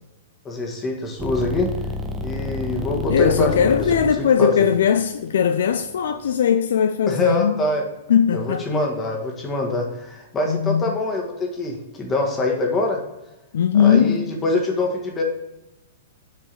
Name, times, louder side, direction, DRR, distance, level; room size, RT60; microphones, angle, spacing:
voice 1, 0.4-1.7 2.2-4.7 7.1-7.8 8.3-13.0 13.7-15.2, left 2 dB, 20° left, 1.6 m, -25 dB
sound 1, 1.2-6.3, left 1 dB, 15° right, 0.8 m, -30 dB
voice 2, 3.1-7.7 8.1-8.6 10.5-10.9 13.5-14.3, left 8 dB, 60° left, 0.4 m, -19 dB
7.0 x 4.5 x 6.2 m
figure-of-eight pair, 105°, 0 cm